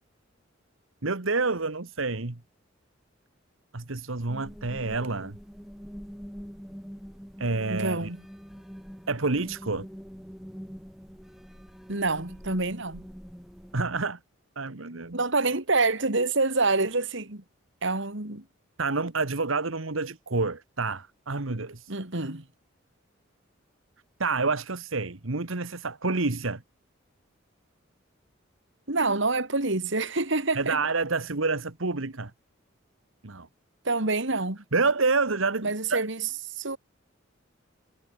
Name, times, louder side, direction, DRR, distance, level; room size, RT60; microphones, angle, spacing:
voice 1, 1.0-2.4 3.7-5.3 7.4-8.1 9.1-9.9 13.7-14.2 14.5-15.5 18.8-21.9 24.2-26.6 30.5-32.3 33.2-33.5 34.7-36.0, right 3 dB, 90° right, 1.6 m, -28 dB
sound 1, 4.3-13.8, equal, ahead, 6.1 m, -44 dB
voice 2, 7.7-8.2 11.9-13.0 15.1-17.4 17.8-18.4 21.9-22.4 28.9-30.8 33.8-34.6 35.6-36.8, right 3 dB, 65° right, 3.3 m, -27 dB
head